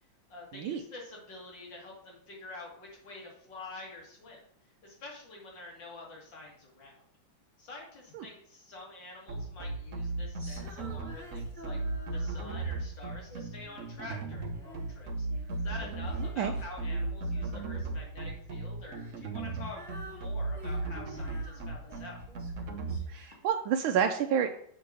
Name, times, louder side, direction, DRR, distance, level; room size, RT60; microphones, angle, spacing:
voice 1, 0.3-4.4 4.8-7.0 7.6-11.8 12.1-15.3 15.6-19.8 20.1-22.2, left 2 dB, 65° left, -2 dB, 2.7 m, -47 dB
sound 1, 9.3-23.0, right 2 dB, 50° right, 1.0 m, -35 dB
Female singing, 10.4-12.8 13.3-15.0 15.3-18.1 18.9-23.5, equal, 25° right, 1.5 m, -51 dB
voice 2, 23.1-24.6, right 8 dB, 85° right, 5 dB, 1.4 m, -29 dB
7.2 x 3.7 x 6.1 m, 0.67 s
omnidirectional pair, 2.2 m